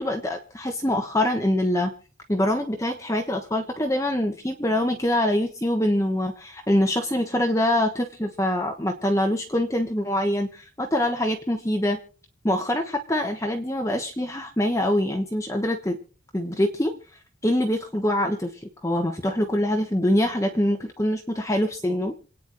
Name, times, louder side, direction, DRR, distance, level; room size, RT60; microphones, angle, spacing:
voice 1, 0.0-1.9 2.3-12.0 12.4-16.0 16.3-16.9 17.4-18.5 18.8-22.1, left 1 dB, 15° left, 3 dB, 1.2 m, -24 dB
27.5 x 9.4 x 3.1 m, 0.40 s
head